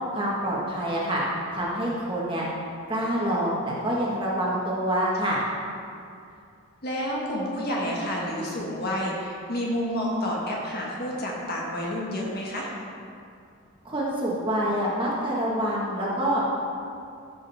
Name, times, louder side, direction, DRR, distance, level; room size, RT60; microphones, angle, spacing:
voice 1, 0.1-1.2 1.5-2.4 2.9-5.4 13.8-16.4, right 1 dB, 25° right, -5 dB, 1.7 m, -26 dB
voice 2, 6.8-12.7, equal, 45° left, -3 dB, 1.6 m, -29 dB
14.0 x 6.4 x 3.6 m, 2.4 s
head